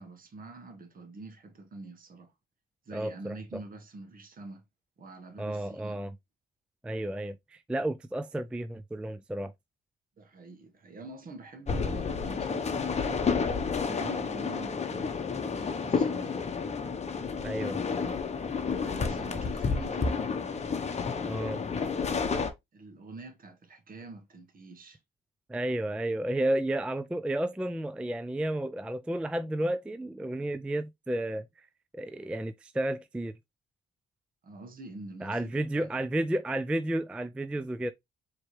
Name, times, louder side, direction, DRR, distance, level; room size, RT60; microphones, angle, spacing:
voice 1, 0.0-2.3 2.8-4.6 5.0-6.0 10.2-13.6 13.8-16.4 18.8-20.2 22.7-25.0 34.4-35.9, right 2 dB, 45° right, 1.3 m, -46 dB
voice 2, 2.9-3.6 5.4-6.2 6.8-9.5 17.4-17.8 21.3-21.6 25.5-31.5 31.9-33.3 35.2-37.9, right 1 dB, 5° right, 0.3 m, -32 dB
sound 1, 11.7-22.5, left 5 dB, 35° left, 0.9 m, -30 dB
4.5 x 3.1 x 3.1 m
cardioid pair, 90°, 20 cm